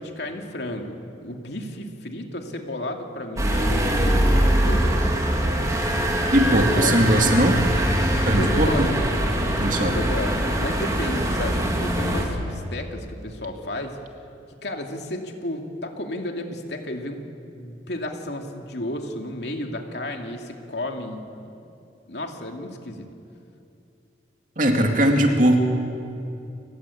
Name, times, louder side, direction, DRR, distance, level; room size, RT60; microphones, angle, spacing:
voice 1, 0.0-6.1 6.4-7.4 8.4-9.1 9.3-14.0 14.6-17.2 17.5-21.5 22.1-23.1, left 1 dB, 70° left, 3 dB, 2.6 m, -33 dB
sound 1, 3.4-12.3, right 1 dB, 20° right, 2.8 m, -22 dB
voice 2, 6.3-7.6 8.3-8.9 9.6-9.9 24.6-25.6, right 1 dB, 45° right, 3 dB, 2.6 m, -19 dB
30.0 x 15.5 x 8.7 m, 2.7 s
head